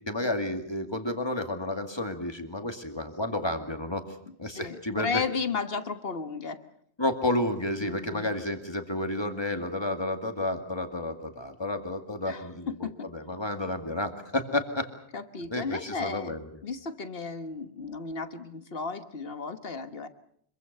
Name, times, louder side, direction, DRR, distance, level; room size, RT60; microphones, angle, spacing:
voice 1, 0.1-4.0 4.4-5.2 7.0-14.9 15.5-16.5, left 1 dB, 25° left, 6 dB, 2.3 m, -31 dB
voice 2, 4.3-6.6 7.8-8.3 12.2-13.1 15.1-16.3 16.6-20.1, left 4 dB, 60° left, 10 dB, 1.6 m, -34 dB
25.5 x 23.5 x 6.7 m, 0.66 s
omnidirectional pair, 1.1 m